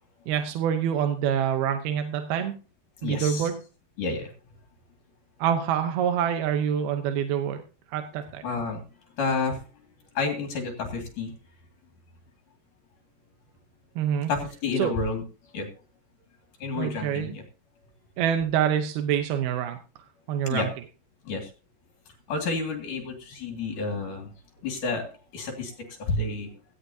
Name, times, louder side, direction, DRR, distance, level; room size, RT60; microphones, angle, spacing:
voice 1, 0.3-2.6 3.0-3.6 5.4-7.6 7.9-8.4 14.0-14.3 14.8-14.9 16.8-17.3 18.2-19.8 20.3-20.7, right 9 dB, 75° right, 7 dB, 2.6 m, -26 dB
voice 2, 3.0-3.5 4.0-4.3 8.4-8.8 9.2-9.6 10.1-11.3 14.3-15.2 15.5-15.7 16.6-17.4 20.5-20.7 21.2-21.5 22.3-24.3 24.6-25.1 25.3-26.5, left 4 dB, 55° left, 3 dB, 3.2 m, -30 dB
17.0 x 14.0 x 2.8 m, 0.35 s
omnidirectional pair, 5.0 m